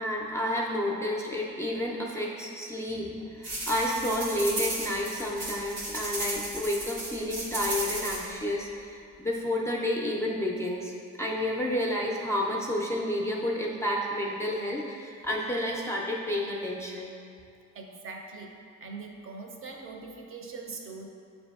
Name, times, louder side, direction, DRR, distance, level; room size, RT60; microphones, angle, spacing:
voice 1, 0.0-10.9 11.2-17.1, left 1 dB, 10° left, -4 dB, 0.4 m, -30 dB
sound 1, 3.4-8.2, right 1 dB, 85° right, 1.2 m, -34 dB
voice 2, 17.7-18.5 18.8-21.1, right 4 dB, 45° right, 1 dB, 0.5 m, -42 dB
6.8 x 2.6 x 2.3 m, 2.3 s
cardioid pair, 90°, 30 cm